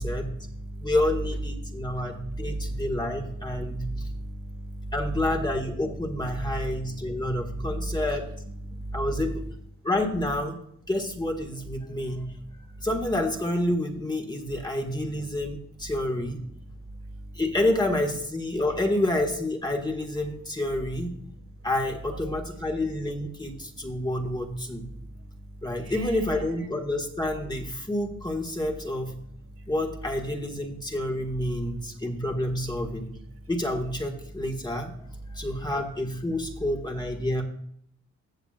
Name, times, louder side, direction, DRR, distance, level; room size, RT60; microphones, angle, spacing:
voice 1, 0.0-0.9 1.6-4.9 6.3-8.2 8.7-9.1 17.1-17.4 22.1-22.3 25.1-25.3 25.8-26.4, right 1 dB, 45° right, 3 dB, 1.7 m, -35 dB
voice 2, 0.8-3.9 4.9-8.2 8.9-9.4 9.8-10.6 10.9-12.3 12.8-16.4 17.3-21.1 21.6-24.8 25.6-29.1 29.7-33.1 33.5-34.9 35.3-37.4, left 1 dB, 15° left, 1 dB, 1.7 m, -28 dB
15.0 x 7.2 x 2.5 m, 0.69 s
cardioid pair, 90°, 30 cm